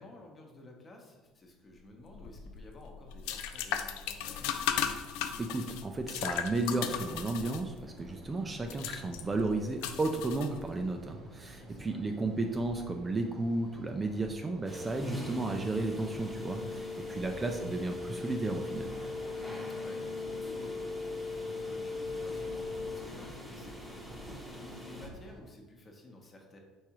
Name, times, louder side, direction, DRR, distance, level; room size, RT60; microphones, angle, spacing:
voice 1, 0.0-4.6 11.4-12.0 19.3-21.1 21.5-26.6, left 1 dB, 30° left, 1 dB, 0.9 m, -52 dB
cleaning toilet, 2.1-11.0, left 9 dB, 85° left, 0.3 m, -37 dB
voice 2, 5.4-18.9, right 2 dB, 20° right, 4 dB, 0.4 m, -33 dB
fan helsinki forumylapiha, 6.1-25.4, right 1 dB, 45° right, 0.9 m, -52 dB
sound 1, 14.6-25.1, left 3 dB, ahead, 0.9 m, -39 dB
4.7 x 3.5 x 3.0 m, 1.2 s
supercardioid pair, 105°, 0 cm